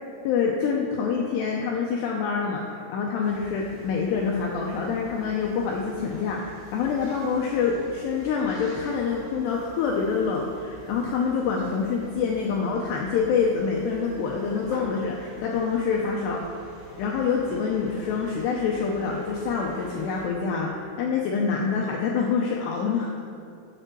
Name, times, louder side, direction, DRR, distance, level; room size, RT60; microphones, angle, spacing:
voice 1, 0.2-16.4 17.0-23.1, left 5 dB, 90° left, -1 dB, 2.4 m, -26 dB
sound 1, 3.2-20.3, left 1 dB, 35° right, 2.6 m, -47 dB
7.7 x 6.7 x 6.1 m, 2.4 s
omnidirectional pair, 5.7 m